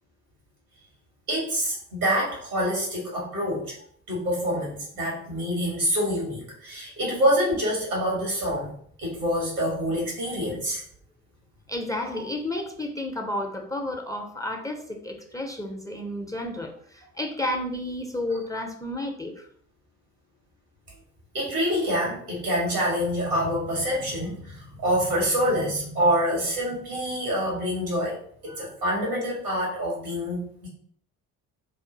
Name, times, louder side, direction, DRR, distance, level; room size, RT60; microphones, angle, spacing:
voice 1, 1.3-3.7 4.1-8.7 9.0-10.8 12.1-12.2 21.3-28.2 28.4-30.7, equal, 85° right, -4 dB, 1.4 m, -26 dB
voice 2, 11.7-19.3, left 1 dB, 10° left, 2 dB, 0.5 m, -31 dB
2.6 x 2.6 x 3.7 m, 0.62 s
figure-of-eight pair, 40°, 42 cm